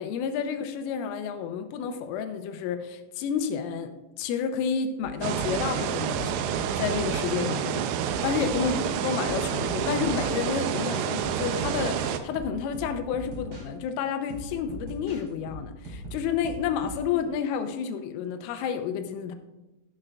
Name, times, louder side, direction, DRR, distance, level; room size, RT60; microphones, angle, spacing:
voice 1, 0.0-3.9 4.2-6.4 6.8-8.7 9.0-19.4, left 7 dB, 85° left, 7 dB, 3.2 m, -30 dB
sound 1, 5.0-7.5 8.1-10.6 11.0-13.7 14.3-17.1, right 1 dB, 55° right, 4.3 m, -40 dB
sound 2, 5.2-12.2, right 9 dB, 85° right, 2.6 m, -29 dB
13.5 x 9.8 x 2.4 m, 1.1 s
omnidirectional pair, 5.7 m